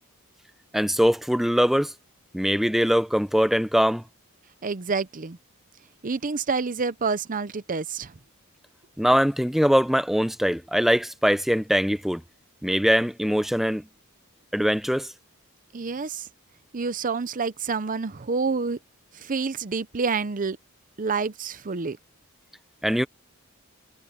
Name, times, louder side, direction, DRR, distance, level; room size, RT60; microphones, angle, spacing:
voice 1, 0.7-1.9 2.3-4.0 9.0-12.2 12.6-13.8 14.5-15.1 22.8-23.1, equal, ahead, 0.7 m, -22 dB
voice 2, 4.6-5.4 6.0-8.1 15.7-16.3 16.7-18.8 19.1-20.6 21.0-22.0, right 4 dB, 40° right, 0.7 m, -28 dB
head